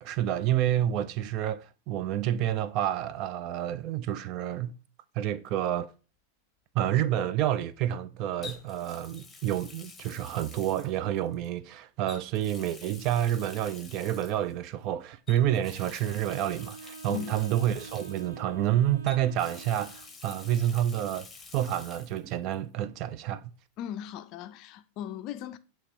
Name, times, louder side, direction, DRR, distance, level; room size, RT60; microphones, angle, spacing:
voice 1, 0.0-4.8 5.2-5.9 6.7-23.5, right 11 dB, 40° right, 0.4 m, -29 dB
Water tap faucet, 5.5-5.7 8.4-11.5 12.0-14.5 15.3-18.7 19.1-22.2 22.5-22.6 24.2-24.3, left 4 dB, 15° left, 1.0 m, -48 dB
Wind instrument woodwind instrument, 16.0-20.2, right 4 dB, 65° right, 1.1 m, -46 dB
voice 2, 23.8-25.6, left 10 dB, 40° left, 0.4 m, -38 dB
7.2 x 3.0 x 4.5 m
figure-of-eight pair, 90°, 0 cm